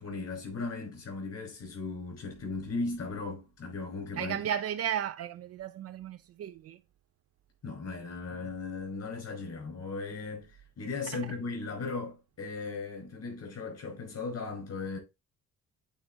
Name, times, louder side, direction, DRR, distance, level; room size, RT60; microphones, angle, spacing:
voice 1, 0.0-4.4 7.6-15.0, left 3 dB, 55° left, 4.8 m, -37 dB
voice 2, 4.1-6.8 11.1-11.3, right 9 dB, 55° right, 0.4 m, -34 dB
8.3 x 3.7 x 3.7 m
cardioid pair, 90°, 30 cm